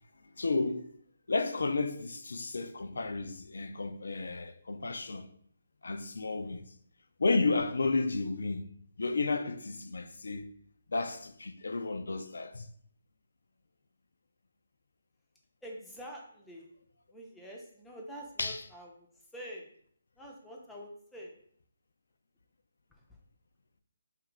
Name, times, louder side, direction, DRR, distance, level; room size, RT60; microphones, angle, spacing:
voice 1, 0.4-0.9 1.3-5.3 5.8-6.6 7.2-8.6 9.0-10.5 10.9-12.7 18.4-18.6, left 3 dB, 70° left, 0.3 m, -32 dB
voice 2, 15.6-16.7 17.1-19.1 19.3-19.7 20.2-21.3 22.9-23.0, equal, 5° left, 0.5 m, -46 dB
2.8 x 2.4 x 3.2 m
figure-of-eight pair, 145°, 0 cm